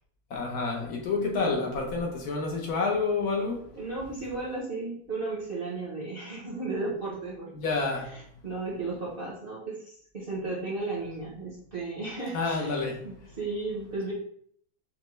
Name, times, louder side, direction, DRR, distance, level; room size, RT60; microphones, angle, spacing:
voice 1, 0.3-3.6 7.5-8.1 12.3-13.1, left 4 dB, 65° left, 1.2 m, -29 dB
voice 2, 1.3-1.7 3.7-7.5 7.9-14.1, right 3 dB, 40° right, 0.9 m, -35 dB
5.1 x 2.2 x 3.1 m
omnidirectional pair, 1.9 m